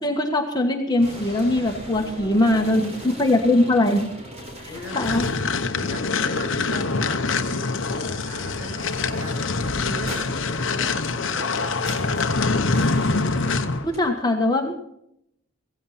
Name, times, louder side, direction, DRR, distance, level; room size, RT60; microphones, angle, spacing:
voice 1, 0.0-4.1 4.6-5.2 13.8-14.8, left 1 dB, 20° left, 2 dB, 1.4 m, -21 dB
sound 1, 1.0-14.0, equal, 30° right, 3.7 m, -40 dB
voice 2, 1.8-3.1 4.6-5.0 5.7-10.3 10.6-11.8, right 1 dB, 55° right, -1 dB, 7.4 m, -38 dB
sound 2, 4.9-13.9, left 3 dB, 55° left, 1.0 m, -25 dB
17.0 x 16.0 x 4.2 m, 0.74 s
head